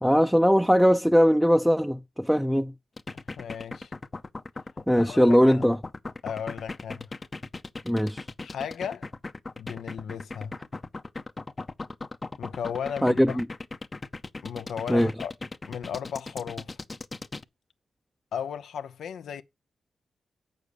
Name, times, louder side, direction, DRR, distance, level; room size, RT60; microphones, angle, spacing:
voice 1, 0.0-2.7 4.9-5.8 7.9-8.2 13.0-13.4 14.9-15.1, equal, ahead, 0.5 m, -20 dB
sound 1, 3.0-17.4, left 3 dB, 35° left, 0.7 m, -38 dB
voice 2, 3.4-3.9 5.0-5.6 6.2-7.1 8.4-9.1 9.6-10.6 12.4-13.4 14.4-15.3 15.7-16.7 18.3-19.4, left 8 dB, 85° left, 0.7 m, -35 dB
8.5 x 6.5 x 6.7 m
cardioid pair, 60°, 0 cm